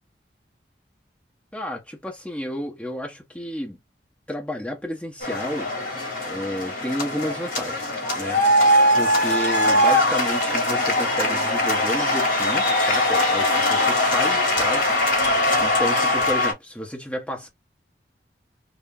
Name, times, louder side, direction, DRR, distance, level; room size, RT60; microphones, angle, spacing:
voice 1, 1.5-3.8 4.3-5.7 6.2-8.4 8.9-14.9 15.6-17.5, left 1 dB, 5° left, 1.0 m, -31 dB
sound 1, 5.2-16.5, left 1 dB, 50° left, 1.5 m, -21 dB
2.9 x 2.7 x 3.5 m
head